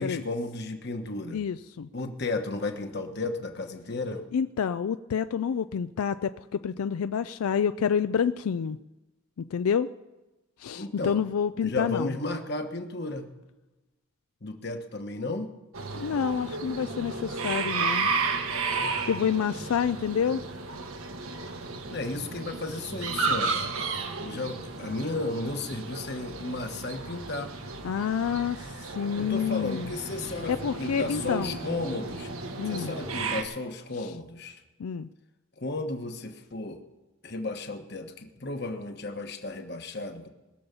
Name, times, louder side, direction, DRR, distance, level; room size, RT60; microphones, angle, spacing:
voice 1, 0.0-1.4 1.9-4.2 10.7-11.2 11.6-13.3 14.4-15.5 21.9-23.7 24.1-27.5 29.2-32.3 32.7-34.6 35.6-36.8 37.2-40.3, left 2 dB, 50° left, 6 dB, 1.3 m, -34 dB
voice 2, 1.3-1.9 4.3-8.8 9.4-9.9 10.6-12.2 15.9-18.1 19.1-20.4 27.8-29.9 30.5-31.6 32.6-32.9 34.8-35.1, left 7 dB, 85° left, 12 dB, 0.4 m, -28 dB
sound 1, 15.7-33.4, right 4 dB, 80° right, 1.4 m, -33 dB
21.0 x 7.1 x 6.9 m, 1.1 s
head